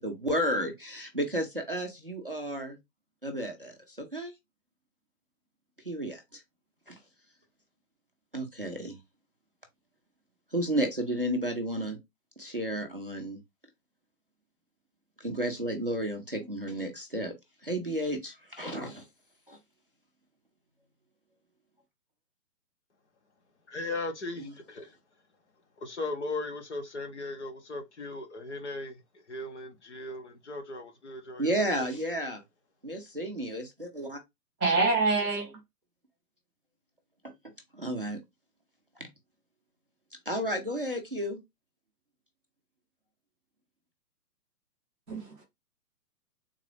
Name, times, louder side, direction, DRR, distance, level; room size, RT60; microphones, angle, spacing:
voice 1, 0.0-2.8 3.2-4.3 5.8-6.4 6.9-7.0 8.3-9.0 10.5-12.0 12.4-13.4 15.2-17.3 17.6-19.0 19.5-19.6 24.4-24.5 31.4-32.4 32.8-34.2 37.2-37.3 37.7-38.2 39.0-39.1 40.3-41.4, right 1 dB, 40° right, 0.4 m, -32 dB
voice 2, 23.7-25.0 25.8-29.0 29.3-31.9, left 2 dB, 45° left, 0.8 m, -37 dB
voice 3, 34.6-35.5 45.1-45.4, right 3 dB, ahead, 0.8 m, -26 dB
3.8 x 2.3 x 3.1 m
hypercardioid pair, 170°, 48 cm